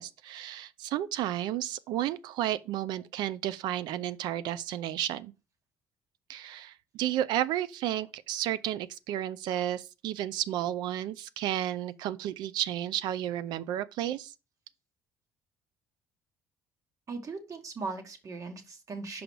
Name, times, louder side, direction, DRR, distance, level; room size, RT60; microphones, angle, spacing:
voice 1, 0.0-5.3 6.3-14.3, right 12 dB, 75° right, 0.5 m, -32 dB
voice 2, 17.1-19.2, right 4 dB, 45° right, 1.5 m, -39 dB
5.2 x 4.9 x 4.6 m
supercardioid pair, 70°, 8 cm